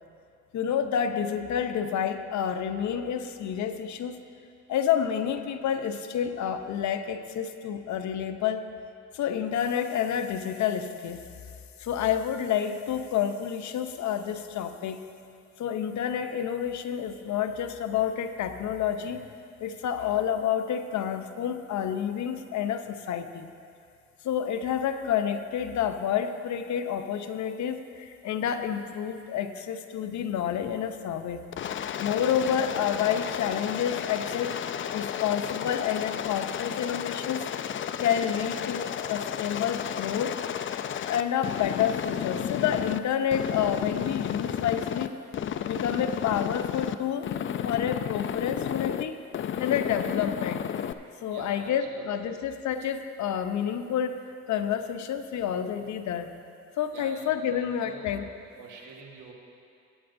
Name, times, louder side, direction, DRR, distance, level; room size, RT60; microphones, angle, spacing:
voice 1, 0.5-4.2 4.7-8.6 9.1-11.2 11.8-15.1 15.6-19.2 19.6-23.5 24.2-31.4 32.0-34.6 34.9-37.5 38.0-40.3 41.1-45.1 45.6-47.3 47.6-49.2 49.6-50.6 51.2-54.2 54.5-56.3 56.8-58.3, left 8 dB, 70° left, 8 dB, 0.7 m, -29 dB
Aircraft, 31.5-43.0 43.3-45.1 45.3-47.0 47.2-49.0 49.3-50.9, left 9 dB, 40° left, 0.4 m, -32 dB
voice 2, 51.3-52.0 56.9-58.1 58.6-59.3, right 4 dB, 90° right, 0 dB, 1.6 m, -46 dB
20.0 x 8.7 x 2.6 m, 2.4 s
cardioid pair, 90°, 30 cm